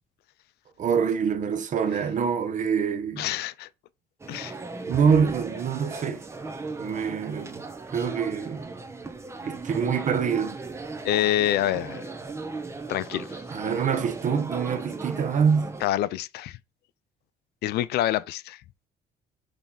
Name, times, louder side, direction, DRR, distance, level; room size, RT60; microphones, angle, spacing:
voice 1, 0.8-3.3 4.9-6.2 6.8-7.6 7.9-8.7 9.5-10.6 13.5-15.8, right 6 dB, 50° right, 1.2 m, -25 dB
voice 2, 3.2-3.7 4.3-4.6 11.0-12.0 12.9-13.4 15.8-16.6 17.6-18.6, left 12 dB, 70° left, 0.5 m, -26 dB
sound 1, 4.2-15.9, right 3 dB, 15° right, 1.0 m, -37 dB
6.7 x 3.4 x 5.7 m
cardioid pair, 110°, 17 cm